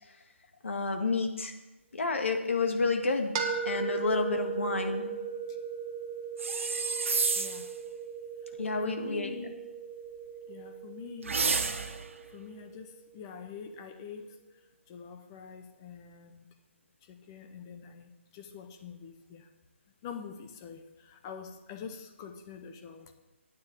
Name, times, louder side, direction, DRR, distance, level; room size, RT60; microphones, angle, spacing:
voice 1, 0.6-1.5 1.9-3.3 3.7-5.1 8.6-9.3, left 3 dB, 70° left, 5 dB, 1.8 m, -29 dB
sound 1, 3.3-13.2, right 6 dB, 20° right, 0.9 m, -38 dB
sound 2, 6.4-7.7 11.2-12.1, right 4 dB, 75° right, 1.0 m, -30 dB
voice 2, 7.3-7.7 8.5-8.6 8.9-9.6 10.5-11.6 12.3-14.4 14.9-16.5 17.0-19.5 20.0-23.1, left 6 dB, 15° left, 7 dB, 0.7 m, -45 dB
9.2 x 6.7 x 8.2 m, 1.1 s
hypercardioid pair, 165°, 7 cm